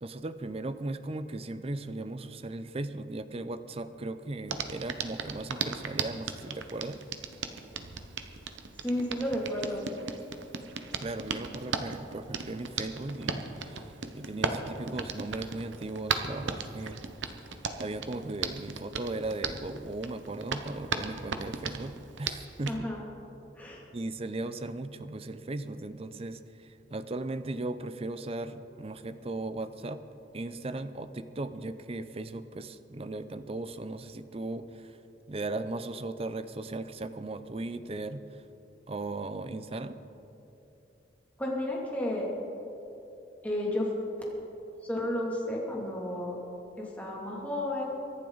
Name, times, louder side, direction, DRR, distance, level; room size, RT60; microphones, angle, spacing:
voice 1, 0.0-7.0 11.0-17.0 17.8-22.9 23.9-30.0 30.3-35.0 35.3-38.2 38.9-40.0, right 2 dB, 35° right, 12 dB, 0.6 m, -37 dB
Hands, 4.5-22.8, right 5 dB, 90° right, 0.9 m, -37 dB
voice 2, 8.8-9.8 22.7-23.0 23.6-23.8 41.4-42.3 43.4-43.9 44.2-44.3 44.9-46.4 46.8-47.8, left 1 dB, 10° left, -4 dB, 2.5 m, -32 dB
24.0 x 11.0 x 4.0 m, 3.0 s
head